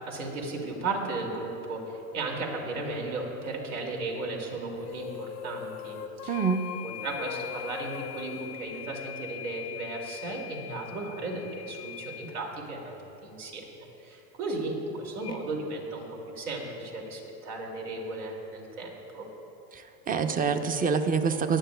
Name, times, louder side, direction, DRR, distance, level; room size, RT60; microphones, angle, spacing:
voice 1, 0.0-6.0 6.2-6.4 6.8-12.9 13.2-19.3, right 2 dB, 75° right, 0 dB, 2.6 m, -35 dB
sound 1, 4.8-9.5, left 9 dB, 85° left, 0.7 m, -41 dB
sound 2, 6.3-12.4 15.2-15.4, left 11 dB, 10° left, 0.4 m, -42 dB
voice 2, 6.3-6.7 19.7-21.6, right 5 dB, 20° right, 8 dB, 0.7 m, -26 dB
19.0 x 11.5 x 2.3 m, 2.9 s
hypercardioid pair, 95°, 44 cm